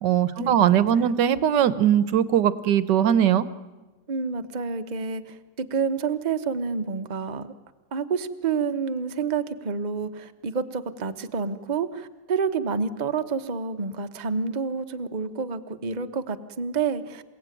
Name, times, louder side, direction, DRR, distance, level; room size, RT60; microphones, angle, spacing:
voice 1, 0.0-3.5, right 9 dB, 60° right, 14 dB, 1.4 m, -20 dB
voice 2, 4.1-7.5 7.9-17.2, right 5 dB, 35° right, 8 dB, 0.8 m, -29 dB
28.5 x 17.5 x 9.2 m, 1.2 s
omnidirectional pair, 2.3 m